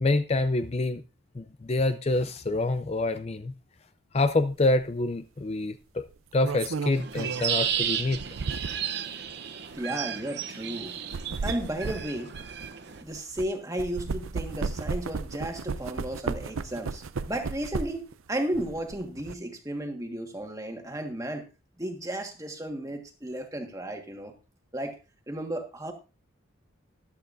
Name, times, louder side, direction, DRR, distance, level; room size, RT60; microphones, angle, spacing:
voice 1, 0.0-1.0 1.4-3.5 4.1-6.0 6.3-8.2, left 2 dB, 30° left, 11 dB, 0.4 m, -26 dB
sound 1, 4.6-4.8 6.1-9.0 9.6-9.8 10.9-13.5 13.8-18.1 18.5-19.3, right 4 dB, 90° right, 0.5 m, -34 dB
sound 2, 6.9-13.0, right 9 dB, 55° right, 0.8 m, -33 dB
voice 2, 9.8-11.0 11.4-12.3 13.0-21.5 21.8-24.3 24.7-25.0 25.3-25.9, right 1 dB, 15° right, 4 dB, 1.5 m, -34 dB
14.0 x 11.5 x 2.6 m, 0.31 s
head